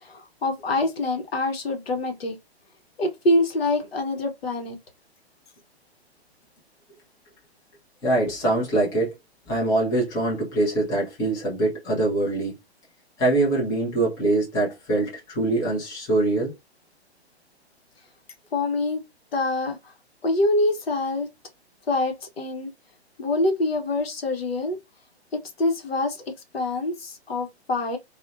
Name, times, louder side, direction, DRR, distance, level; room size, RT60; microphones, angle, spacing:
voice 1, 0.0-2.3 3.0-4.8 18.5-19.0 19.3-19.8 20.2-21.3 21.9-22.7 23.2-24.8 25.3-26.2 26.5-28.0, left 2 dB, 65° left, 0.8 m, -25 dB
voice 2, 8.0-9.2 9.5-12.5 13.2-16.5, right 2 dB, 10° left, 0.6 m, -23 dB
2.4 x 2.1 x 2.5 m
figure-of-eight pair, 125°, 33 cm